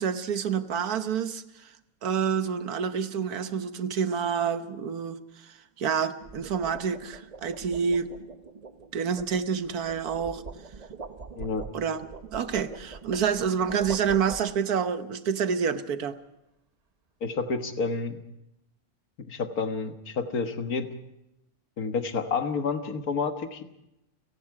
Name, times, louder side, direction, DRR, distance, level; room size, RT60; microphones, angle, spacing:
voice 1, 0.0-1.7 2.0-8.1 8.9-10.4 11.7-12.1 12.3-16.2, right 7 dB, 90° right, 10 dB, 1.6 m, -28 dB
sound 1, 0.6-0.8 6.0-14.9, right 4 dB, 35° right, 0.7 m, -44 dB
voice 2, 11.3-11.7 17.2-18.2 19.3-20.9 21.8-23.6, left 4 dB, 80° left, 7 dB, 2.0 m, -29 dB
30.0 x 18.5 x 4.9 m, 0.87 s
omnidirectional pair, 1.6 m